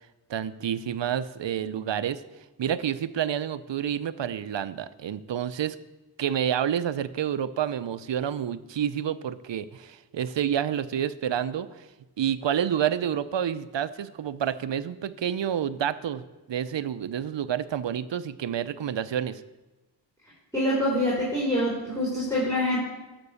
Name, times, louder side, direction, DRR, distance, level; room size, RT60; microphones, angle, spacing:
voice 1, 0.3-2.2 2.6-5.8 6.2-11.9 12.2-19.4, right 9 dB, 85° right, 14 dB, 0.6 m, -29 dB
voice 2, 20.5-22.8, left 1 dB, 5° left, -7 dB, 3.8 m, -25 dB
13.5 x 6.1 x 6.9 m, 1.1 s
wide cardioid pair, 95°, 42 cm